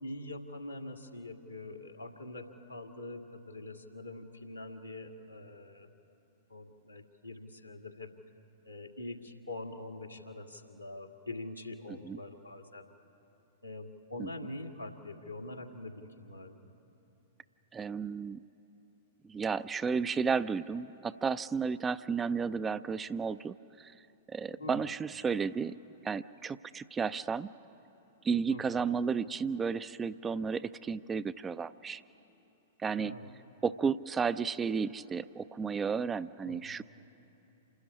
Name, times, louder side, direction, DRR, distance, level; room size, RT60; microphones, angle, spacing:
voice 1, 0.0-5.9 6.5-8.1 8.6-12.9 13.6-16.7 24.6-24.9 28.5-28.8 33.0-33.3 36.4-36.8, left 2 dB, 90° left, 0 dB, 1.9 m, -44 dB
voice 2, 17.7-18.4 19.2-23.9 24.3-25.7 26.0-27.5 28.2-32.0 32.8-33.2 33.6-36.8, right 5 dB, 15° right, 14 dB, 0.4 m, -33 dB
27.5 x 13.0 x 9.9 m, 3.0 s
figure-of-eight pair, 100°, 0 cm